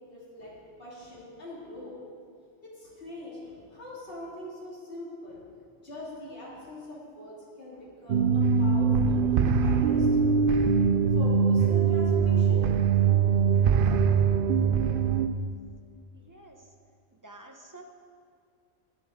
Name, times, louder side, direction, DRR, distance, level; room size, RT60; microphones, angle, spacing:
voice 1, 0.1-2.0 2.6-5.4 5.8-10.2 10.7-12.7, left 1 dB, 50° left, -6 dB, 3.1 m, -42 dB
sound 1, 8.1-15.3, right 6 dB, 60° right, 0.6 m, -22 dB
voice 2, 16.1-16.6 17.2-17.8, right 2 dB, 15° right, 2 dB, 0.9 m, -49 dB
21.5 x 7.5 x 3.8 m, 2.2 s
omnidirectional pair, 1.3 m